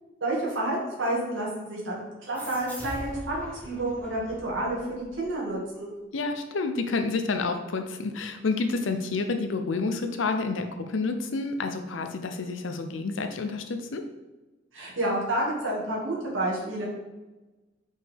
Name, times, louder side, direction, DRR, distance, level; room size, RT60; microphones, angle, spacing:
voice 1, 0.2-5.9 14.7-16.8, right 1 dB, 85° right, -4 dB, 2.1 m, -29 dB
sound 1, 2.3-5.6, equal, 10° left, 0.9 m, -42 dB
voice 2, 6.1-14.0, left 3 dB, 80° left, 6 dB, 0.6 m, -29 dB
5.4 x 5.3 x 3.5 m, 1.1 s
head